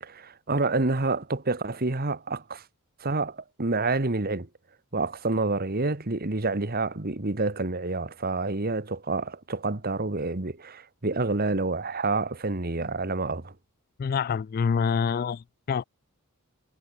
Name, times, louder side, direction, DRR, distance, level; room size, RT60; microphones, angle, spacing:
voice 1, 0.0-2.6 3.0-4.5 4.9-13.5, right 3 dB, 45° right, 1.5 m, -28 dB
voice 2, 14.0-15.8, left 6 dB, 40° left, 0.3 m, -26 dB
head